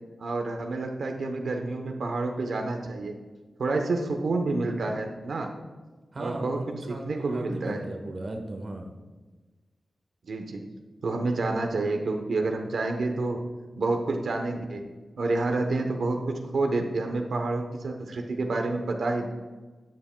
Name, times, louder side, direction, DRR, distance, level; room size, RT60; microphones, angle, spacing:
voice 1, 0.2-3.2 3.6-5.5 6.2-6.6 6.9-7.9 10.3-10.7 11.0-13.5 13.8-14.8 15.2-19.3, right 3 dB, 80° right, 4 dB, 0.8 m, -28 dB
voice 2, 6.1-8.9, right 1 dB, 40° right, 4 dB, 1.1 m, -36 dB
13.0 x 9.6 x 2.2 m, 1.3 s
wide cardioid pair, 160°, 0 cm